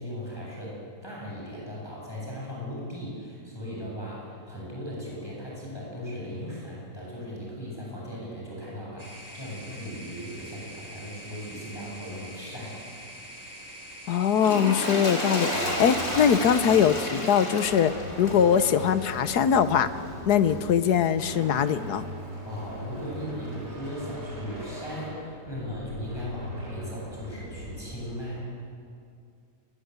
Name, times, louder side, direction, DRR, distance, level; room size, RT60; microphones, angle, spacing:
voice 1, 0.0-12.8 22.4-28.5, equal, 15° left, -5 dB, 8.1 m, -37 dB
sound 1, 9.0-16.5, equal, 15° right, 4.4 m, -44 dB
voice 2, 14.1-19.9 20.3-22.0, left 8 dB, 75° left, 12 dB, 1.5 m, -22 dB
Toilet flush, 14.3-19.8 20.5-20.6, left 1 dB, 55° left, 4.5 m, -32 dB
sound 2, 15.5-28.0, equal, 40° right, 4.9 m, -40 dB
25.5 x 21.0 x 8.2 m, 2.3 s
omnidirectional pair, 1.7 m